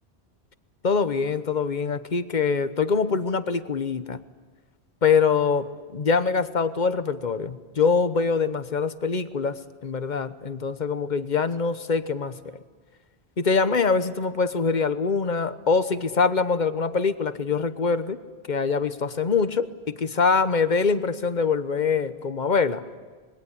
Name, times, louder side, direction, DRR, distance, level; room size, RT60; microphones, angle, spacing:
voice 1, 0.8-4.2 5.0-12.6 13.4-18.2 18.5-22.8, left 5 dB, 45° left, 12 dB, 1.2 m, -24 dB
26.5 x 22.0 x 9.9 m, 1.4 s
omnidirectional pair, 1.1 m